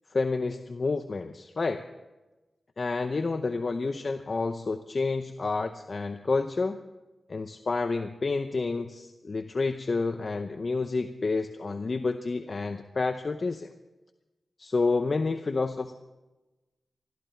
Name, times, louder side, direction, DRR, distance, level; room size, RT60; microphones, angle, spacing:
voice 1, 0.1-1.9 2.8-6.8 7.3-13.7 14.6-15.9, left 3 dB, 50° left, 8 dB, 0.7 m, -29 dB
20.5 x 14.0 x 4.4 m, 1.1 s
wide cardioid pair, 70°, 0 cm